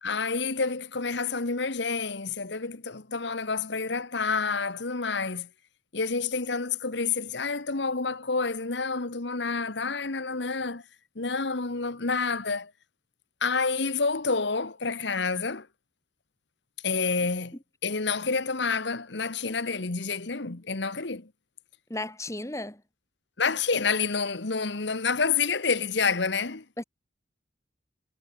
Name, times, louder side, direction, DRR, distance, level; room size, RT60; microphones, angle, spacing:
voice 1, 0.0-5.5 5.9-10.8 11.2-12.7 13.4-15.7 16.8-17.6 17.8-21.3 23.4-26.6, left 4 dB, 65° left, 1.4 m, -28 dB
voice 2, 21.9-22.8 26.8-26.9, left 1 dB, 15° left, 2.5 m, -34 dB
head